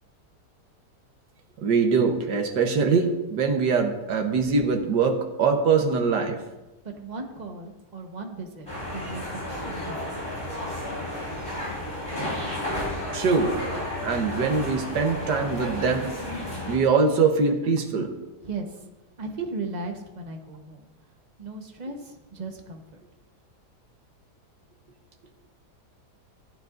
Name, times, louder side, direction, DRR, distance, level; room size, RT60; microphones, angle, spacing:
voice 1, 1.6-6.4 13.1-13.6 14.0-16.1 16.7-18.1, right 5 dB, 85° right, 4 dB, 1.7 m, -23 dB
voice 2, 6.8-10.2 18.4-18.8 19.2-20.9 21.4-23.0, right 3 dB, 30° right, 3 dB, 1.1 m, -37 dB
sound 1, 8.7-16.8, left 1 dB, 15° left, 3.8 m, -32 dB
15.5 x 9.2 x 2.6 m, 1.0 s
omnidirectional pair, 1.8 m